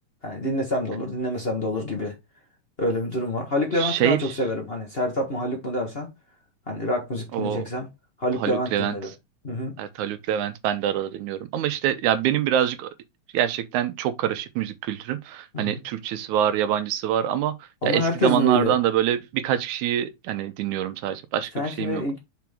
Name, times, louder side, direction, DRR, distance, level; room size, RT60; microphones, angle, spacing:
voice 1, 0.2-2.1 2.8-6.1 6.7-7.9 8.2-9.1 9.4-9.7 15.5-15.8 17.8-18.7 21.5-22.2, left 1 dB, 55° left, 0.6 m, -27 dB
voice 2, 3.8-4.2 7.3-7.6 8.4-9.0 9.8-12.9 13.3-17.5 17.8-22.0, right 10 dB, 80° right, 2.1 m, -25 dB
6.1 x 4.9 x 3.5 m
omnidirectional pair, 3.6 m